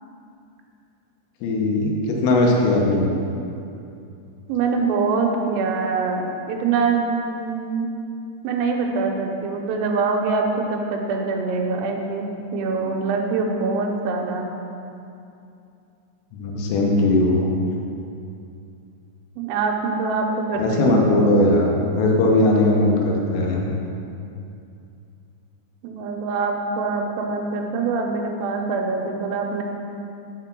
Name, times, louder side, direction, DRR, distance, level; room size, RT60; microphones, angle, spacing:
voice 1, 1.4-3.3 16.3-17.5 20.6-23.7, left 2 dB, 80° left, -1 dB, 3.5 m, -19 dB
voice 2, 4.5-7.9 8.4-12.3 12.5-14.5 19.4-21.3 25.8-29.6, right 4 dB, 90° right, 2 dB, 3.5 m, -24 dB
7.3 x 5.9 x 5.9 m, 2.6 s
omnidirectional pair, 5.8 m